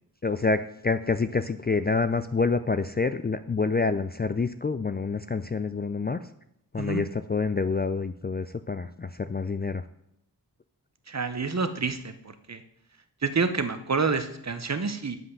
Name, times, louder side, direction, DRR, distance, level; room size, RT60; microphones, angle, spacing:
voice 1, 0.2-6.2 6.7-9.8, left 4 dB, 25° left, 11 dB, 0.4 m, -27 dB
voice 2, 11.1-12.1 12.5-12.6 13.2-15.2, right 4 dB, 40° right, 10 dB, 0.8 m, -28 dB
7.7 x 5.6 x 6.6 m, 0.75 s
wide cardioid pair, 70°, 40 cm